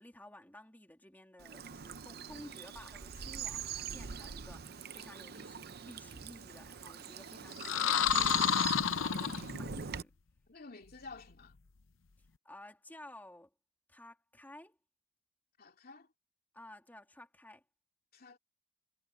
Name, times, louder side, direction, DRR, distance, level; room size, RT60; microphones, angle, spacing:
voice 1, 0.0-10.1 12.4-13.5 13.9-14.8 16.5-17.6, left 1 dB, 10° left, 3.1 m, -54 dB
Bird vocalization bird call bird song / Stream, 1.4-10.0, right 6 dB, 50° right, 0.7 m, -43 dB
sound 1, 7.6-9.9, left 8 dB, 85° left, 0.8 m, -30 dB
voice 2, 10.5-11.5 15.6-16.1 18.1-18.4, left 3 dB, 50° left, 2.7 m, -51 dB
head